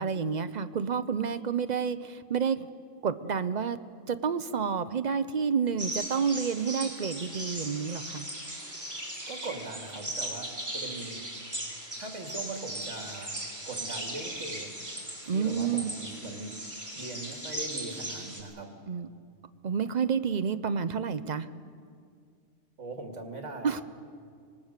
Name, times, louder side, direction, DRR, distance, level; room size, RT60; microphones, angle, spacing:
voice 1, 0.0-2.7 3.0-3.8 4.1-8.3 15.3-15.9 18.9-19.1 19.6-21.5 23.6-23.8, right 6 dB, 45° right, 12 dB, 0.7 m, -29 dB
sound 1, 5.8-18.4, right 1 dB, 15° right, 3.4 m, -38 dB
voice 2, 9.3-11.2 12.0-13.4 13.7-14.7 15.3-16.5 17.0-18.7 22.8-23.8, right 3 dB, 75° right, 3 dB, 2.5 m, -40 dB
25.0 x 19.5 x 6.6 m, 2.2 s
omnidirectional pair, 1.3 m